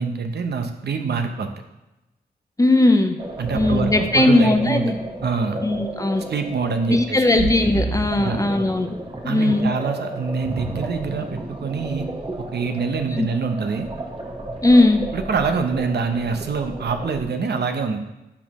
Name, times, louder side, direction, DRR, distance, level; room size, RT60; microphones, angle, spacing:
voice 1, 0.0-1.6 3.4-4.9 5.2-5.6 6.3-7.5 8.2-8.5 9.2-12.1 12.5-13.9 15.1-18.0, right 5 dB, 70° right, 6 dB, 0.8 m, -25 dB
voice 2, 2.6-3.2 3.5-5.0 5.6-6.2 6.9-9.0 9.2-9.7 13.2-13.3 14.6-15.0, left 2 dB, 20° left, 6 dB, 0.6 m, -18 dB
sound 1, 3.2-17.2, right 2 dB, 30° right, 1.2 m, -32 dB
11.5 x 4.2 x 3.0 m, 0.97 s
cardioid pair, 75°, 18 cm